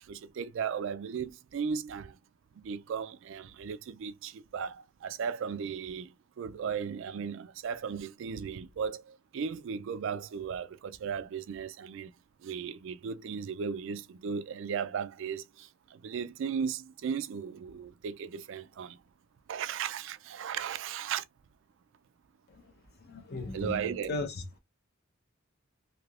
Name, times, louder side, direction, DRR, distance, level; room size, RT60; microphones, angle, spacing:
voice 1, 0.0-2.2 2.6-6.1 6.4-12.1 12.4-19.0 19.5-21.2 23.5-24.1, right 6 dB, 65° right, 0.3 m, -36 dB
voice 2, 23.1-23.8 24.1-24.3, left 2 dB, 50° left, 0.8 m, -35 dB
3.3 x 2.8 x 2.4 m
head